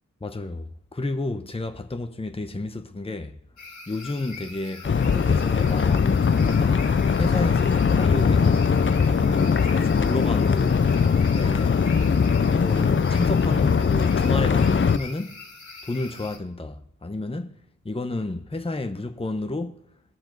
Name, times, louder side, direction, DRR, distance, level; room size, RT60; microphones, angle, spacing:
voice 1, 0.2-3.4 3.9-8.8 9.1-11.8 12.5-15.4 15.8-19.8, left 2 dB, 15° left, 0.9 m, -31 dB
sound 1, 3.6-16.4, left 4 dB, 60° left, 2.2 m, -42 dB
sound 2, 4.8-15.0, left 6 dB, 35° left, 0.5 m, -20 dB
sound 3, 6.8-14.3, right 5 dB, 40° right, 1.1 m, -44 dB
21.5 x 7.2 x 4.0 m
wide cardioid pair, 70°, 33 cm